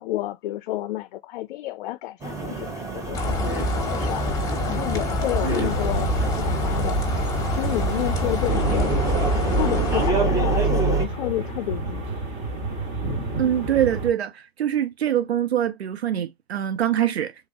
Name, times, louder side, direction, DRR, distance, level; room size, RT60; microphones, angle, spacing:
voice 1, 0.0-4.3 4.7-7.1 7.5-9.0 9.6-12.1, left 15 dB, 55° left, 0.4 m, -30 dB
sound 1, 2.2-11.1, right 3 dB, 10° right, 0.9 m, -27 dB
sound 2, 3.1-10.1, left 2 dB, 10° left, 1.3 m, -26 dB
sound 3, 5.4-14.1, right 2 dB, 35° right, 1.8 m, -31 dB
voice 2, 13.4-17.4, right 10 dB, 90° right, 0.5 m, -24 dB
3.7 x 2.6 x 2.8 m
hypercardioid pair, 105°, 31 cm